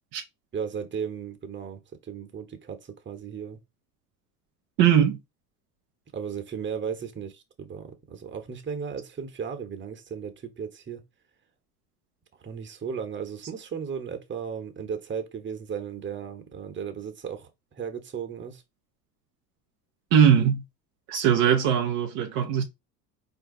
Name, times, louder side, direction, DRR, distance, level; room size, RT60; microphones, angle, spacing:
voice 1, 0.5-3.6 6.1-11.0 12.4-18.6, right 7 dB, 25° right, 1.1 m, -35 dB
voice 2, 4.8-5.2 20.1-20.6 21.1-22.7, right 8 dB, 60° right, 0.9 m, -20 dB
4.3 x 2.7 x 3.8 m
hypercardioid pair, 70°, 49 cm